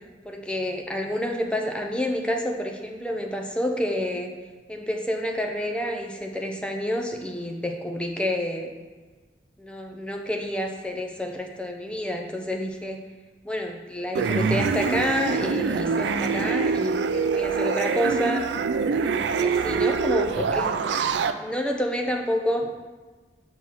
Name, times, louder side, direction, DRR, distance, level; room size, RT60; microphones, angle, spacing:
voice 1, 0.3-4.3 4.7-8.7 9.6-13.0 13.4-18.4 19.0-20.7 21.4-22.7, equal, 5° left, 2 dB, 0.5 m, -29 dB
sound 1, 14.1-21.3, right 5 dB, 80° right, 0.3 m, -25 dB
6.2 x 5.5 x 2.9 m, 1.3 s
head